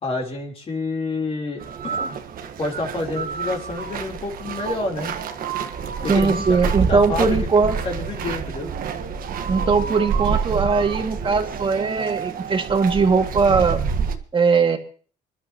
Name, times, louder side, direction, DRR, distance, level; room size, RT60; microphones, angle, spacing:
voice 1, 0.0-2.2 2.6-5.1 6.0-6.6 6.9-8.7, left 3 dB, 35° left, 0 dB, 3.9 m, -28 dB
at the castle, 1.6-14.2, right 6 dB, 60° right, 1.6 m, -28 dB
voice 2, 6.1-7.8 9.5-13.8 14.3-14.8, right 4 dB, 30° right, 5 dB, 2.3 m, -20 dB
27.0 x 11.5 x 3.0 m, 0.41 s
cardioid pair, 110°, 17 cm